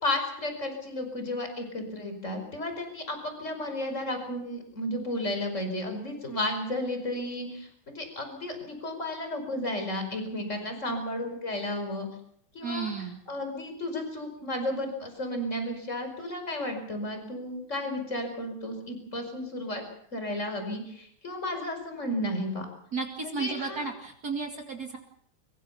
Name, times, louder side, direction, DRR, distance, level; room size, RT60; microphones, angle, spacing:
voice 1, 0.0-12.1 12.5-12.9 13.3-19.8 20.1-22.7 23.2-23.8, left 1 dB, 35° left, 5 dB, 5.4 m, -33 dB
voice 2, 12.6-13.2 22.9-25.0, right 4 dB, 50° right, 3 dB, 2.7 m, -33 dB
24.5 x 23.0 x 5.6 m, 0.64 s
omnidirectional pair, 2.2 m